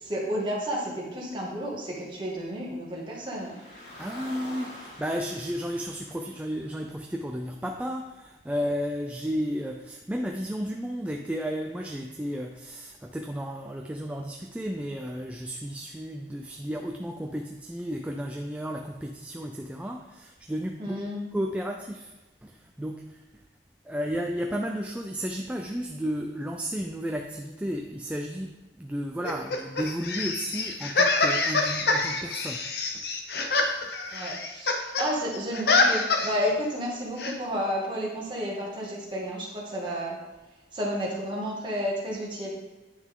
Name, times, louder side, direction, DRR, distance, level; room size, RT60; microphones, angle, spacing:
voice 1, 0.0-3.6 20.8-21.2 34.1-40.2 40.7-42.5, equal, 25° right, -4 dB, 2.0 m, -31 dB
Car, 3.2-7.5, left 1 dB, 90° left, 3.0 m, -46 dB
voice 2, 4.0-21.0 21.3-22.1 22.4-23.2 23.8-32.7 32.9-33.1, equal, 5° right, 2 dB, 0.4 m, -33 dB
sound 1, 29.2-35.1 35.3-36.5 37.2-37.3, left 3 dB, 60° left, 0.9 m, -26 dB
9.6 x 6.2 x 3.7 m, 1.1 s
head